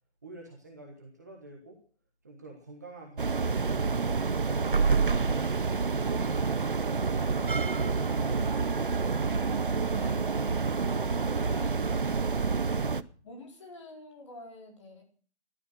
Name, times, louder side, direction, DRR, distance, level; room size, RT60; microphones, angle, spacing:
voice 1, 0.2-1.8 2.2-5.5, right 2 dB, 15° right, 0 dB, 1.4 m, -49 dB
sound 1, 3.2-13.0, right 4 dB, 50° right, 0.9 m, -28 dB
voice 2, 9.9-10.7 11.3-11.9 13.2-15.0, left 1 dB, 25° left, 1 dB, 4.3 m, -48 dB
16.0 x 13.0 x 6.2 m, 0.43 s
hypercardioid pair, 180°, 34 cm